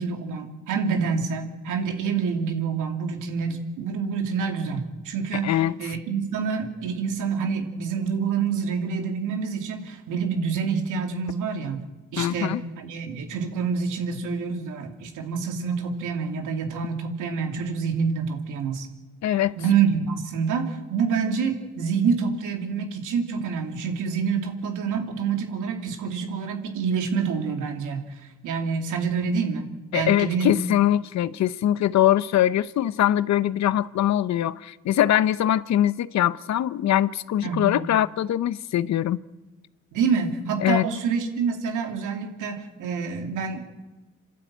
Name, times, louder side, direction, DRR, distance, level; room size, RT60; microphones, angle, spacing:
voice 1, 0.0-11.8 12.1-18.9 19.3-28.0 28.4-30.6 37.4-37.7 39.9-43.6, right 6 dB, 85° right, 2.8 m, -27 dB
voice 2, 5.4-5.8 12.2-12.6 19.2-19.5 29.9-39.2 40.6-40.9, left 12 dB, 65° left, 0.7 m, -22 dB
27.0 x 12.0 x 8.9 m
cardioid pair, 90°, 30 cm